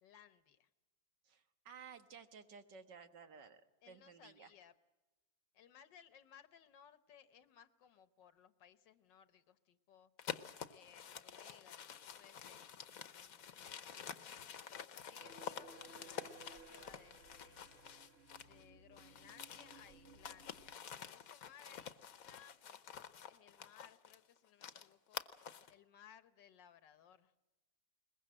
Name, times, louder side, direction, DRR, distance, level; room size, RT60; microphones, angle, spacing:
voice 1, 0.0-0.7 3.8-4.7 5.5-10.1 10.7-14.5 14.9-17.6 18.4-22.8 23.3-25.2 25.7-27.3, left 8 dB, 85° left, 12 dB, 1.8 m, -63 dB
voice 2, 1.3-3.6 3.9-4.5, right 6 dB, 75° right, 8 dB, 2.1 m, -56 dB
sound 1, 10.2-18.6 18.9-25.7, left 8 dB, 60° left, 1.3 m, -49 dB
sound 2, 15.2-20.8, right 4 dB, 50° right, 1.3 m, -60 dB
22.0 x 21.0 x 7.6 m, 1.1 s
omnidirectional pair, 1.9 m